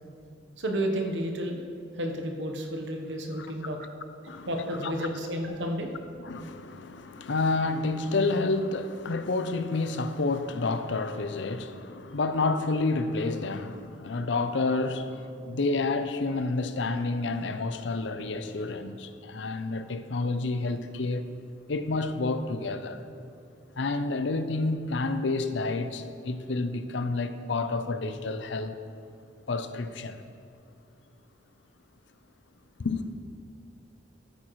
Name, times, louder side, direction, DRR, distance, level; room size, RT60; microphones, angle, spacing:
voice 1, 0.6-1.6 1.9-3.9 4.5-5.9, equal, 70° right, 1.1 m, -31 dB
voice 2, 6.2-21.3 21.7-23.0 23.8-28.8 29.5-30.2 32.8-33.1, left 3 dB, 75° left, 0.6 m, -29 dB
13.0 x 8.8 x 3.2 m
head